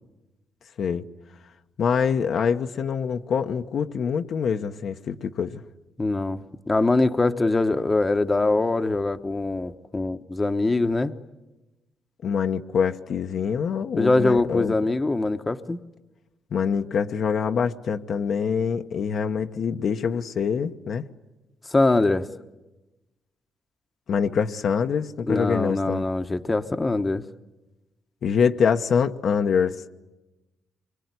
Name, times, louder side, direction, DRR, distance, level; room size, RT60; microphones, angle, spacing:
voice 1, 1.8-5.6 12.2-14.7 16.5-21.0 24.1-26.0 28.2-29.9, left 6 dB, 60° left, 6 dB, 1.0 m, -25 dB
voice 2, 6.0-11.1 14.0-15.8 21.7-22.3 25.3-27.2, left 2 dB, 20° left, 8 dB, 1.1 m, -23 dB
25.0 x 23.0 x 9.6 m, 1.0 s
cardioid pair, 90°, 0 cm